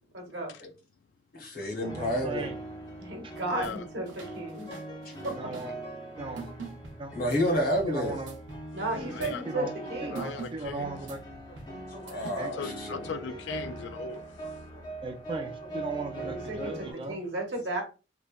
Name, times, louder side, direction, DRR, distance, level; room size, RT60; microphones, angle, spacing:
voice 1, 0.1-0.5 3.0-4.7 5.2-5.5 8.7-10.2 16.2-17.8, right 2 dB, 65° right, 0.9 m, -34 dB
voice 2, 1.3-2.4 7.1-8.2 11.9-13.0 14.7-14.8, equal, 50° left, 0.9 m, -29 dB
sound 1, 1.8-16.9, right 2 dB, 25° left, 0.5 m, -42 dB
voice 3, 2.0-2.6 5.4-5.7 6.2-6.5 7.0-7.1 7.9-8.3 9.1-9.2 9.5-9.7 10.0-11.2 12.4-12.5 15.0-17.2, right 3 dB, 30° right, 0.3 m, -37 dB
sound 2, 3.4-3.8 4.0-5.7 6.4-8.0 8.3-8.7 9.0-9.4 10.2-11.7 12.1-12.3, right 4 dB, 85° right, 0.6 m, -44 dB
voice 4, 3.5-3.8 9.1-9.4 10.1-10.9 12.5-14.3, left 6 dB, 70° left, 0.3 m, -38 dB
3.1 x 2.1 x 2.3 m
head